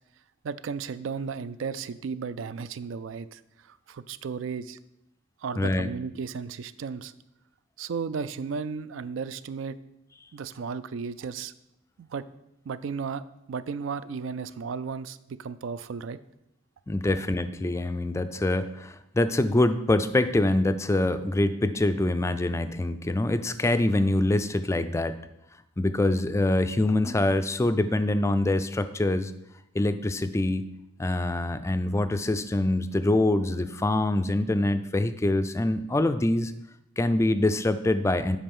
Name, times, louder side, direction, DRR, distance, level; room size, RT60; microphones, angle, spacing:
voice 1, 0.4-4.8 5.4-7.1 7.8-9.8 10.3-11.5 12.0-12.2 12.7-16.2, right 5 dB, 70° right, 14 dB, 0.4 m, -34 dB
voice 2, 5.6-5.9 16.9-25.2 25.8-29.3 29.7-30.7 31.0-36.5 37.0-38.4, left 2 dB, 15° left, 11 dB, 0.3 m, -25 dB
8.6 x 5.0 x 5.4 m, 0.84 s
head